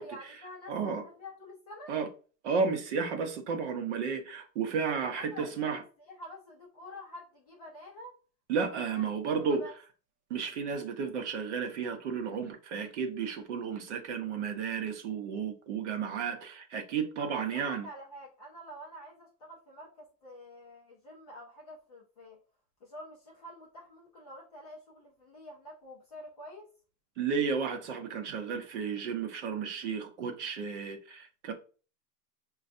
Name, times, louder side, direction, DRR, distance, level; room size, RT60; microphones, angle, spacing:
voice 1, 0.0-1.9 4.9-8.1 8.8-9.0 9.3-9.7 17.2-22.4 22.8-26.7, equal, 25° left, 0.5 m, -48 dB
voice 2, 0.7-1.0 1.9-2.1 2.4-5.8 8.5-9.6 10.3-17.9 27.2-31.5, right 6 dB, 45° right, 0.7 m, -33 dB
5.3 x 2.3 x 2.5 m
supercardioid pair, 165°, 49 cm